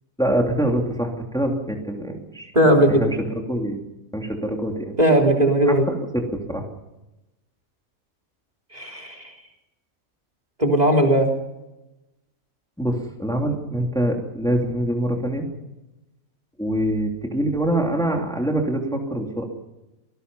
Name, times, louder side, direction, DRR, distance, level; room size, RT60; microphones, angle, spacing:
voice 1, 0.2-2.5 2.9-3.8 4.1-5.0 5.7-6.7 12.8-15.5 16.6-19.4, right 1 dB, 5° left, 1 dB, 3.0 m, -25 dB
voice 2, 2.5-3.0 5.0-5.8 8.7-9.3 10.6-11.3, right 1 dB, 30° right, 1 dB, 3.7 m, -17 dB
27.0 x 19.0 x 5.6 m, 0.97 s
omnidirectional pair, 1.4 m